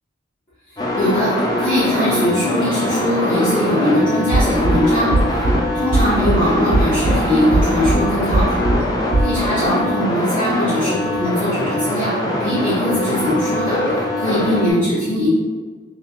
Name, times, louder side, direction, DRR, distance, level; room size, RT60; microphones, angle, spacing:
sound 1, 0.8-14.7, left 1 dB, 20° left, 0.4 m, -22 dB
voice 1, 1.0-1.3 1.6-5.4 5.7-8.7 9.2-12.1 12.4-15.3, left 1 dB, 45° left, -12 dB, 1.0 m, -20 dB
sound 2, 4.3-4.8 5.1-5.6 5.9-6.4 6.7-7.2 7.5-8.0 8.3-8.8 9.1-9.2, right 2 dB, 50° right, 0.3 m, -17 dB
3.1 x 3.0 x 2.8 m, 1.4 s
head